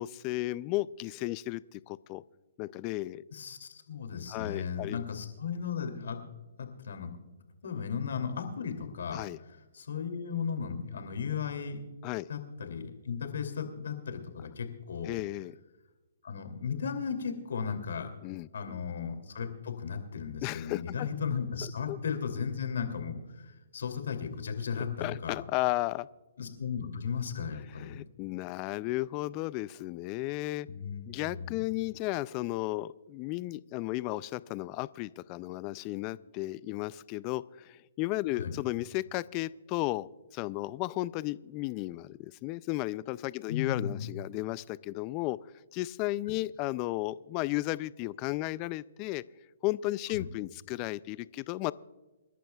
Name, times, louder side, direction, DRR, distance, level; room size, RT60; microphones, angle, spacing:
voice 1, 0.0-2.2 2.6-3.2 4.3-5.0 9.1-9.4 12.0-12.3 15.0-15.6 18.2-18.8 20.4-21.1 21.6-22.0 25.0-26.1 27.8-30.7 31.1-45.4 45.7-49.2 49.6-51.7, left 18 dB, 25° left, 19 dB, 0.3 m, -34 dB
voice 2, 3.3-6.2 6.6-7.1 7.6-9.2 9.7-11.8 12.3-15.2 16.2-18.1 18.5-25.4 26.4-28.0 30.7-31.6 38.4-38.5 43.5-44.1 50.1-50.3, left 6 dB, 75° left, 6 dB, 2.7 m, -35 dB
28.5 x 12.0 x 2.3 m, 1.2 s
hypercardioid pair, 155°, 0 cm